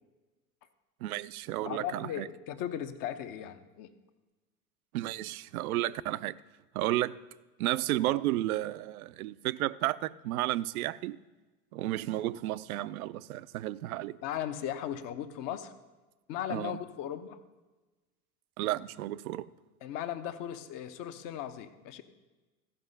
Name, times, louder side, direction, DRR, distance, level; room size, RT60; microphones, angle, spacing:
voice 1, 1.0-2.3 4.9-6.4 6.7-7.2 7.6-11.2 11.7-14.2 16.5-16.8 18.6-19.5, right 15 dB, 65° right, 0.5 m, -32 dB
voice 2, 1.6-3.9 14.2-15.7 16.3-17.4 19.8-22.0, left 10 dB, 45° left, 1.0 m, -37 dB
14.5 x 5.5 x 5.4 m
hypercardioid pair, 85°, 46 cm